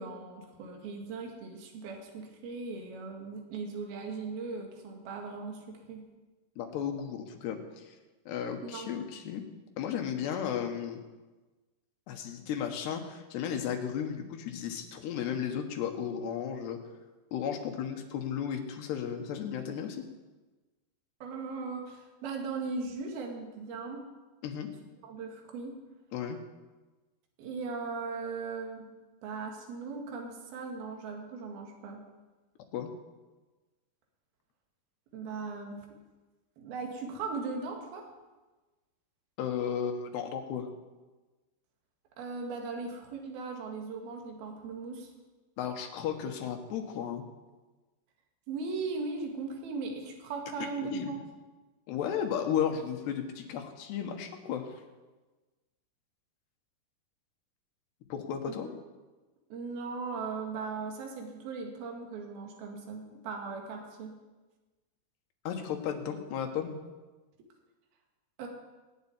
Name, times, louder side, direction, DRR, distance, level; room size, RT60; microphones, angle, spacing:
voice 1, 0.0-6.1 8.6-8.9 21.2-24.1 25.0-25.7 27.4-28.9 29.2-32.1 35.1-35.9 36.6-38.0 42.2-45.1 48.5-51.2 58.5-58.7 59.5-64.1 68.4-68.5, right 4 dB, 70° right, 2 dB, 3.9 m, -38 dB
voice 2, 6.6-8.0 8.3-9.4 9.8-11.0 12.1-16.8 17.3-20.0 24.4-24.7 26.1-26.4 32.7-32.9 39.4-40.7 45.6-47.3 50.9-51.2 51.9-54.7 58.1-58.7 65.5-66.8, left 8 dB, 85° left, 5 dB, 3.6 m, -34 dB
18.5 x 7.2 x 9.9 m, 1.2 s
omnidirectional pair, 4.7 m